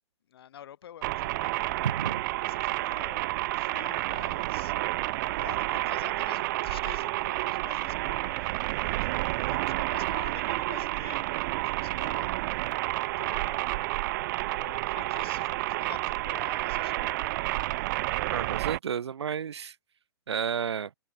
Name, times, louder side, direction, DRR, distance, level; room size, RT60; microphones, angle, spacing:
voice 1, 0.3-1.7 2.4-3.2 3.5-4.7 5.2-8.5 9.0-12.4 13.2-13.8 14.5-17.4, left 10 dB, 60° left, 3.5 m, -48 dB
sound 1, 1.0-18.8, right 18 dB, 45° right, 1.4 m, -30 dB
voice 2, 1.8-2.2 18.3-19.7 20.3-20.9, right 7 dB, 70° right, 1.4 m, -31 dB
figure-of-eight pair, 120°, 14 cm